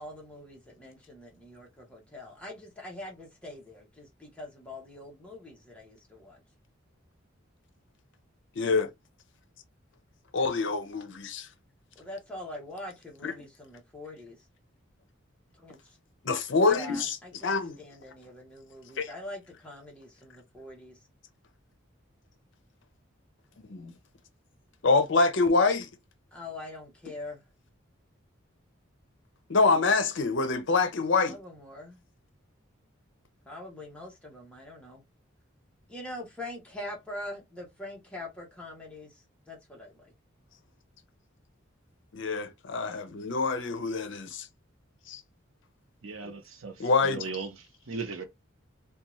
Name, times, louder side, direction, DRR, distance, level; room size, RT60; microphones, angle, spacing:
voice 1, 0.0-6.4 11.9-14.4 15.6-16.0 16.6-21.0 26.3-27.4 31.1-32.0 33.5-35.0 35.9-40.1 46.2-46.4, left 1 dB, 5° left, 0.8 m, -43 dB
voice 2, 8.6-8.9 10.3-11.5 13.2-13.3 16.2-17.2 17.4-17.8 19.0-19.1 23.6-23.9 24.8-25.9 29.5-31.3 42.1-44.5 45.1-45.2 46.8-47.2, left 3 dB, 65° left, 0.6 m, -26 dB
voice 3, 46.0-48.2, right 4 dB, 80° right, 0.7 m, -38 dB
2.6 x 2.2 x 2.9 m
head